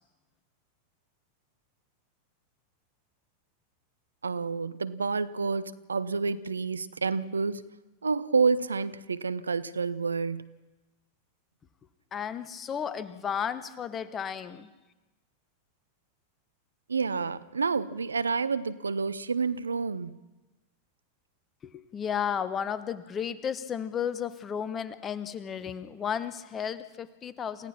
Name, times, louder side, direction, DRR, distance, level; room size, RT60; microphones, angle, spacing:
voice 1, 4.2-7.6 8.0-10.5 16.9-20.2, right 4 dB, 75° right, 16 dB, 0.7 m, -29 dB
voice 2, 12.1-14.7 21.6-27.7, left 8 dB, 25° left, 14 dB, 1.2 m, -33 dB
29.0 x 17.0 x 6.0 m, 1.1 s
figure-of-eight pair, 90°, 0 cm